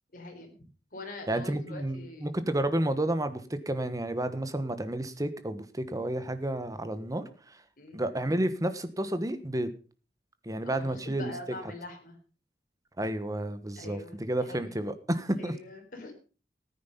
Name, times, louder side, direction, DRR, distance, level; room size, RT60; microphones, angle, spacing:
voice 1, 0.1-2.3 7.8-8.0 10.6-12.2 13.8-14.9 15.4-16.1, left 2 dB, 50° left, 3 dB, 4.0 m, -44 dB
voice 2, 1.3-7.6 7.9-9.7 10.4-11.3 13.0-15.5, right 1 dB, 20° right, 11 dB, 1.2 m, -31 dB
14.5 x 9.6 x 5.3 m, 0.36 s
head